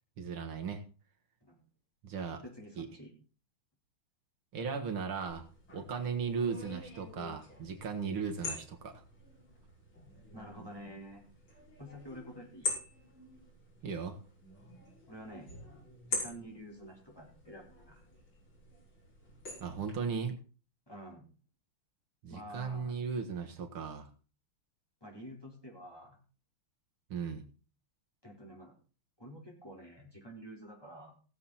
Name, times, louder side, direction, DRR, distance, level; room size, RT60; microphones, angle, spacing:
voice 1, 0.2-0.8 2.0-2.4 2.8-2.9 4.5-5.5 5.7-9.0 13.8-14.2 19.6-20.4 22.2-24.1 27.1-27.5, right 6 dB, 75° right, 4 dB, 2.5 m, -36 dB
voice 2, 2.4-3.1 10.3-11.3 11.8-12.7 15.1-15.5 16.1-18.1 20.9-21.3 22.3-23.0 25.0-26.2 28.2-28.7 29.2-31.1, equal, 10° left, -2 dB, 4.2 m, -49 dB
sound 1, 5.3-19.9, left 3 dB, 70° left, 6.4 m, -45 dB
18.5 x 7.4 x 4.2 m, 0.37 s
omnidirectional pair, 2.3 m